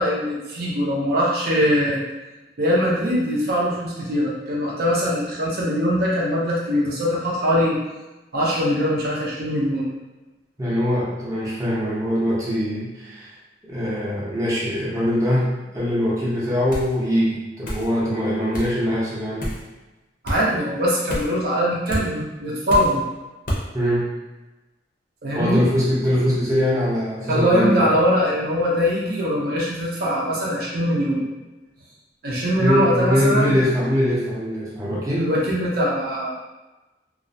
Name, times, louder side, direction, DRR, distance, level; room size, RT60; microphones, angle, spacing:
voice 1, 0.0-2.0 2.6-7.8 8.3-9.9 20.2-23.0 25.2-25.6 27.3-31.3 32.2-33.6 35.2-36.3, equal, 60° right, -5 dB, 0.5 m, -22 dB
voice 2, 10.6-13.3 13.7-15.5 15.7-19.5 23.7-24.1 25.3-27.9 32.6-35.3, equal, 20° right, -8 dB, 0.6 m, -22 dB
sound 1, 16.7-16.9 17.6-17.9 18.5-18.7 19.4-19.6 20.2-20.4 21.1-21.4 21.9-22.1 22.7-23.0 23.5-23.6, equal, 50° left, 0.6 m, -28 dB
2.3 x 2.0 x 2.6 m, 1.1 s
head